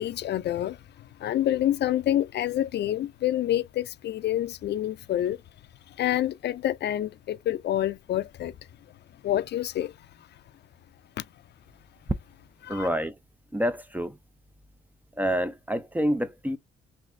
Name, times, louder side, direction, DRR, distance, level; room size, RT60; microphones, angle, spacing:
voice 1, 0.0-5.4 6.0-8.5 9.2-9.9 11.2-11.3 12.6-12.9, left 12 dB, 60° left, 0.4 m, -27 dB
voice 2, 12.7-13.1 13.5-14.2 15.2-16.6, equal, 10° right, 0.4 m, -27 dB
4.0 x 2.7 x 2.5 m
cardioid pair, 90°, 20 cm